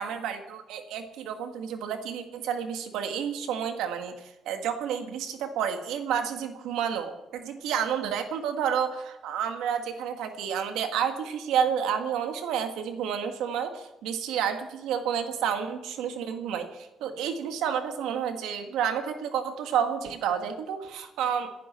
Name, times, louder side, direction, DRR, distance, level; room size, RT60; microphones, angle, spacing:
voice 1, 0.0-21.5, right 8 dB, 90° right, 6 dB, 1.7 m, -30 dB
27.5 x 10.5 x 4.4 m, 0.97 s
cardioid pair, 90°, 0 cm